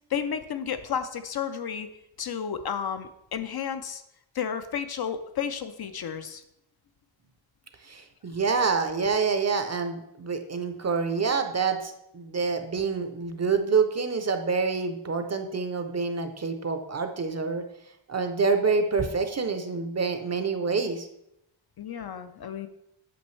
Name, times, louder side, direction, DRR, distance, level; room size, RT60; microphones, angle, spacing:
voice 1, 0.1-1.9 2.2-4.0 4.3-6.4 21.8-22.7, left 7 dB, 55° left, 9 dB, 0.5 m, -32 dB
voice 2, 7.8-17.6 18.1-21.1, right 5 dB, 35° right, 7 dB, 0.6 m, -27 dB
8.5 x 6.0 x 3.2 m, 0.81 s
wide cardioid pair, 170°, 48 cm